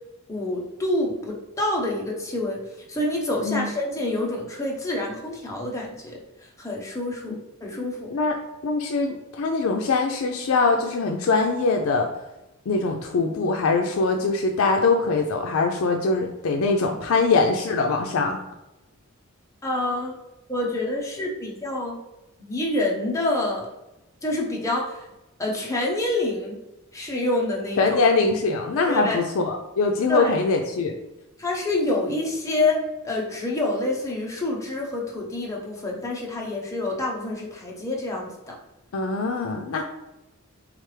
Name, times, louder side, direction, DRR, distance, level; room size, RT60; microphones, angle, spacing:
voice 1, 0.3-2.6 2.9-6.2 6.6-7.4 7.6-8.1 19.6-20.1 20.5-22.0 22.4-23.7 24.2-25.0 25.4-26.6 26.9-28.0 28.9-29.2 30.1-30.4 31.4-38.5, left 2 dB, 15° left, -2 dB, 0.8 m, -27 dB
voice 2, 7.7-8.4 8.6-12.1 12.7-18.4 27.8-30.9 38.9-39.8, left 3 dB, 75° left, 3 dB, 0.4 m, -23 dB
3.7 x 3.3 x 3.2 m, 0.95 s
head